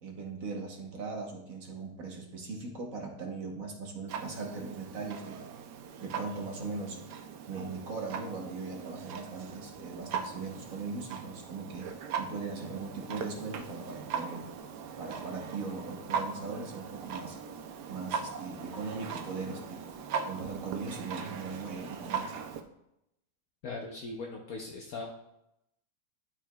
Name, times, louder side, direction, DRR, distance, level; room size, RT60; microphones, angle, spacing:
voice 1, 0.0-5.4 6.0-7.0 7.5-11.9 12.2-14.4 15.0-17.4 17.9-19.8 20.2-22.3, right 4 dB, 55° right, 1 dB, 1.4 m, -39 dB
Clock, 4.1-22.6, right 6 dB, 80° right, 1.2 m, -40 dB
voice 2, 23.6-25.1, left 3 dB, 65° left, 0 dB, 1.1 m, -39 dB
11.5 x 4.7 x 2.3 m, 0.83 s
omnidirectional pair, 1.8 m